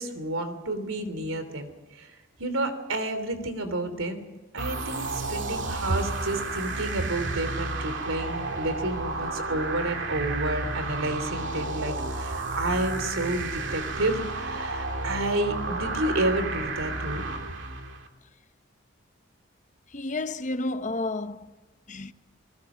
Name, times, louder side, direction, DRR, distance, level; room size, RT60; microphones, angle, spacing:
voice 1, 0.0-1.7 1.9-4.2 4.5-17.2, right 1 dB, 80° right, 3.2 m, -30 dB
sound 1, 4.6-18.1, right 3 dB, 65° right, 2.5 m, -32 dB
voice 2, 19.9-21.5 21.9-22.1, left 2 dB, 35° left, 0.8 m, -31 dB
28.0 x 20.0 x 6.2 m
head